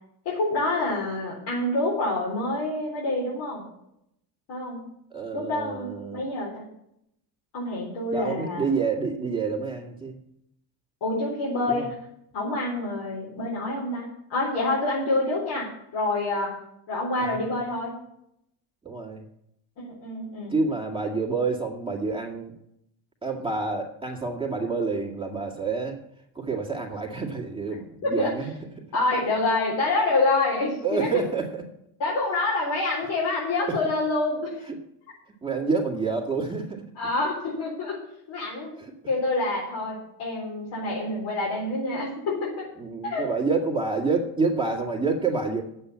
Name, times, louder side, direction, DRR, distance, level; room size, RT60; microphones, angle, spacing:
voice 1, 0.2-3.6 4.5-4.8 5.3-6.7 7.5-8.7 11.0-11.9 12.3-16.5 16.9-17.9 19.8-20.5 28.0-28.3 28.9-31.1 32.0-34.6 37.0-38.0 38.3-38.7 39.1-42.7 43.0-43.3, left 2 dB, 75° left, -5 dB, 4.0 m, -27 dB
voice 2, 5.1-6.2 8.1-10.2 11.7-11.9 17.2-17.4 18.8-19.3 20.5-22.5 23.2-26.0 26.3-28.5 30.8-31.7 33.7-33.8 35.4-36.9 38.8-38.9 42.8-45.6, right 4 dB, 15° right, -2 dB, 2.0 m, -28 dB
8.7 x 8.2 x 8.5 m, 0.78 s
cardioid pair, 115°, 40 cm